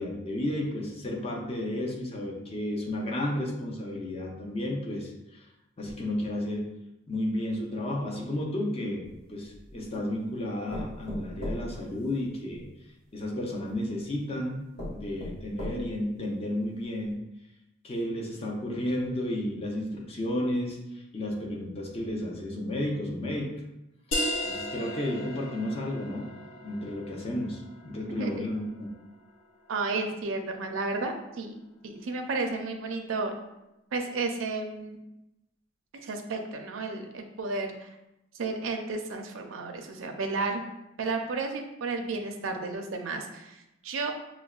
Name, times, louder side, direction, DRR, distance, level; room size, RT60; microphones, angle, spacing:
voice 1, 0.0-5.5 5.8-6.7 7.1-12.7 13.1-17.2 17.8-23.6 24.1-26.3 26.6-28.9, left 1 dB, 30° left, 0 dB, 0.6 m, -32 dB
sound 1, 9.0-9.9 10.7-12.7 13.6-13.7 14.3-14.4 14.8-16.1 16.6-16.7 17.0-17.1, left 1 dB, 55° left, 1.3 m, -38 dB
sound 2, 24.1-29.5, left 1 dB, 75° left, 0.6 m, -36 dB
voice 2, 28.2-28.5 29.7-33.3 33.9-35.0 36.0-37.9 38.3-40.6 41.0-44.1, right 3 dB, 80° right, 4 dB, 0.5 m, -32 dB
5.9 x 2.1 x 2.3 m, 0.91 s
head